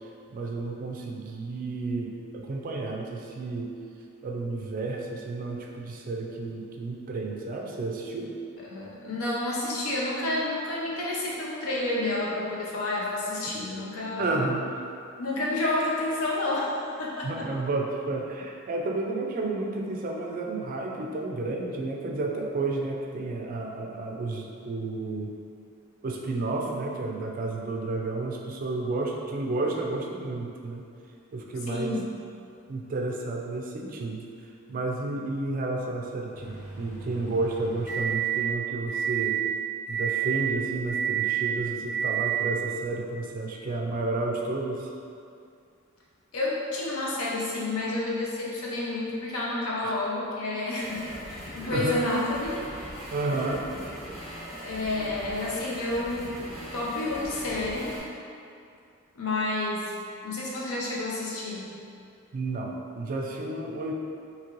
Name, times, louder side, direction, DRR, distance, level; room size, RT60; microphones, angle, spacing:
voice 1, 0.3-3.7 4.2-8.3 14.2-14.9 17.2-25.3 26.0-30.8 31.3-32.0 32.7-34.3 34.7-39.4 39.9-44.9 49.8-50.0 51.7-52.0 53.1-53.7 62.3-63.9, right 2 dB, 40° right, 0 dB, 0.3 m, -31 dB
voice 2, 8.7-14.3 15.2-17.5 31.7-32.1 46.3-52.6 54.6-56.4 56.7-57.9 59.2-61.7, left 2 dB, 85° left, -4 dB, 0.6 m, -30 dB
sound 1, 36.3-38.4 38.9-39.4 39.9-40.4 40.9-41.4 41.9-42.4, right 10 dB, 40° left, 0.9 m, -29 dB
sound 2, 50.8-58.0, equal, ahead, 0.6 m, -40 dB
3.0 x 2.9 x 2.5 m, 2.5 s
head